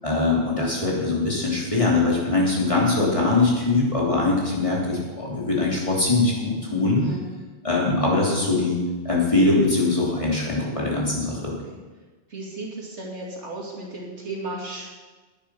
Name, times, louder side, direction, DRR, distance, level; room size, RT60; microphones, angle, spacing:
voice 1, 0.0-7.0 7.6-8.8 9.0-11.5, left 3 dB, 30° left, -4 dB, 2.9 m, -22 dB
voice 2, 12.3-14.9, right 2 dB, 90° right, -3 dB, 2.9 m, -35 dB
10.5 x 9.5 x 6.1 m, 1.3 s
omnidirectional pair, 1.2 m